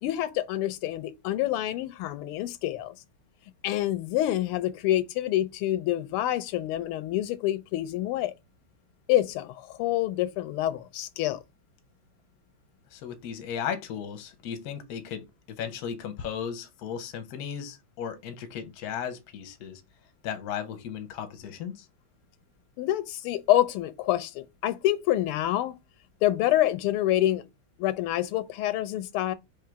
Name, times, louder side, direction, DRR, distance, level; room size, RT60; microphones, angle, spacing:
voice 1, 0.0-2.9 3.6-8.3 9.1-11.4 22.8-25.8 26.2-27.4 27.8-29.3, left 14 dB, 85° left, 1.5 m, -27 dB
voice 2, 12.9-19.8 20.2-21.9, left 8 dB, 60° left, 1.1 m, -36 dB
3.7 x 3.2 x 4.5 m
omnidirectional pair, 2.4 m